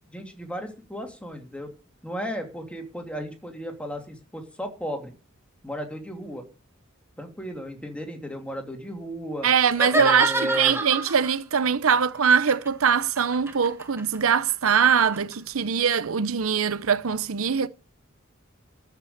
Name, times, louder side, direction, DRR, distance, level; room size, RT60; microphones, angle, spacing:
voice 1, 0.1-1.7 2.0-5.1 5.6-6.4 7.2-9.5 9.9-10.8, equal, 5° left, 2.7 m, -34 dB
voice 2, 9.4-17.7, right 7 dB, 80° right, 0.7 m, -22 dB
sound 1, 9.7-11.4 12.3-15.4, right 1 dB, 10° right, 1.5 m, -29 dB
13.5 x 5.9 x 8.6 m
head